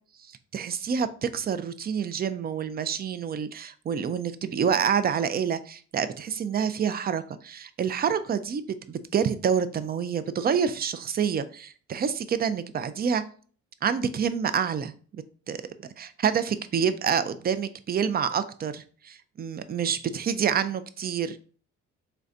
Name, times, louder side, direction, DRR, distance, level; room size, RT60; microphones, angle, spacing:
voice 1, 0.5-8.6 8.9-13.2 13.8-15.6 16.0-21.4, right 7 dB, 30° right, 12 dB, 0.4 m, -27 dB
3.9 x 3.3 x 2.5 m, 0.43 s
cardioid pair, 90°, 30 cm